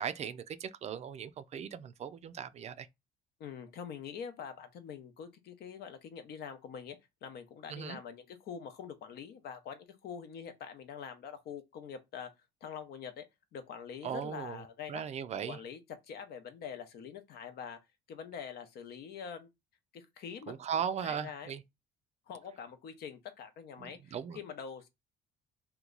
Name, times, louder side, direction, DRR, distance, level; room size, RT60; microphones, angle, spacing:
voice 1, 0.0-2.9 7.7-8.0 14.0-14.6 14.9-15.6 20.5-21.6 24.1-24.4, right 8 dB, 40° right, 0.3 m, -37 dB
voice 2, 3.4-12.3 12.6-13.2 13.5-15.0 15.3-17.8 18.1-19.5 19.9-20.5 21.0-21.5 22.3-24.9, left 7 dB, 70° left, 0.7 m, -45 dB
2.9 x 2.2 x 3.7 m
cardioid pair, 110°, 17 cm